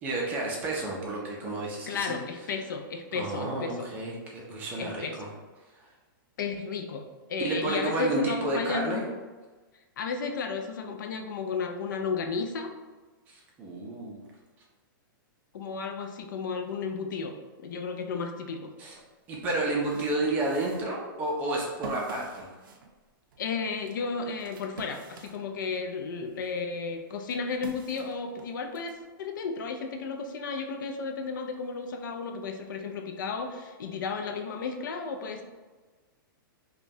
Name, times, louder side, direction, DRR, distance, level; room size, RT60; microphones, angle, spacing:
voice 1, 0.0-2.2 3.1-5.3 7.4-9.0 13.3-14.2 18.8-19.0 19.3-22.5, right 2 dB, 15° right, -2 dB, 0.4 m, -31 dB
voice 2, 1.9-3.9 4.8-5.3 6.4-9.0 10.0-12.7 15.5-17.3 17.6-18.7 23.4-35.4, left 5 dB, 60° left, 5 dB, 0.5 m, -33 dB
sound 1, 19.5-25.9 26.3-28.9, right 3 dB, 70° right, 0.6 m, -47 dB
5.0 x 2.3 x 2.7 m, 1.3 s
hypercardioid pair, 170°, 12 cm